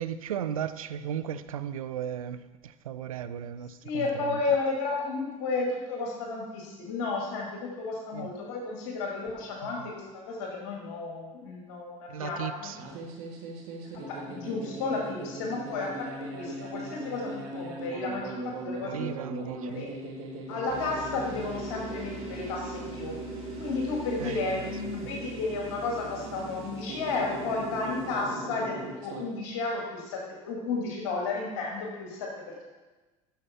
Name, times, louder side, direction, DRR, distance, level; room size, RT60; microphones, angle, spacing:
voice 1, 0.0-4.4 8.1-8.3 9.6-9.9 12.1-12.8 18.8-19.9 24.2-24.7 25.0-25.1, right 9 dB, 75° right, 11 dB, 0.4 m, -36 dB
voice 2, 3.8-12.7 13.9-19.1 19.4-19.9 20.5-23.2 23.6-28.8 29.0-32.3, left 3 dB, 60° left, -1 dB, 2.0 m, -33 dB
sound 1, 12.7-29.2, right 2 dB, 60° right, 1.6 m, -39 dB
sound 2, 20.7-28.3, right 5 dB, 35° right, 3.0 m, -45 dB
11.5 x 6.6 x 4.3 m, 1.2 s
figure-of-eight pair, 65°, 18 cm